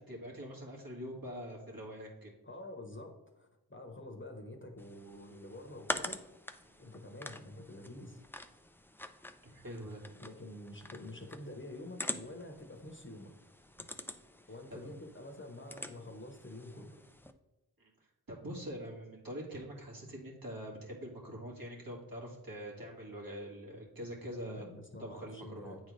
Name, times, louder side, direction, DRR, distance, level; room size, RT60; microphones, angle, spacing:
voice 1, 0.0-2.3 6.6-6.9 9.4-10.2 14.0-14.1 14.7-14.9 17.8-17.9 18.3-24.6 25.0-25.8, equal, 55° right, -3 dB, 2.0 m, -44 dB
voice 2, 2.4-6.2 6.8-8.2 10.2-13.3 14.5-17.0 24.4-25.8, left 1 dB, 30° left, 3 dB, 1.0 m, -47 dB
sound 1, 4.8-17.3, left 1 dB, 5° left, 0.4 m, -46 dB
8.8 x 3.9 x 3.2 m, 0.99 s
wide cardioid pair, 45°, 40 cm